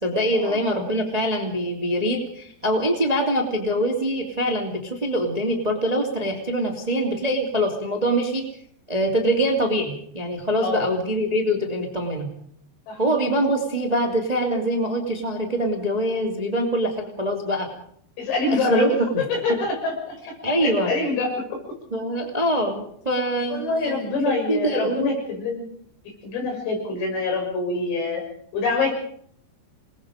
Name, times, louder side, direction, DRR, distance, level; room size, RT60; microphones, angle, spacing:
voice 1, 0.0-8.4 8.9-12.3 13.0-17.7 18.5-18.9 20.4-20.9 21.9-24.1 24.5-25.1, equal, 15° right, 1 dB, 1.5 m, -24 dB
voice 2, 10.6-10.9 12.9-13.0 18.2-18.9 19.2-20.2 20.6-21.6 23.5-25.6 26.2-28.2 28.5-28.9, left 3 dB, 80° left, 1 dB, 9.2 m, -25 dB
27.5 x 21.0 x 5.1 m, 0.66 s
omnidirectional pair, 5.8 m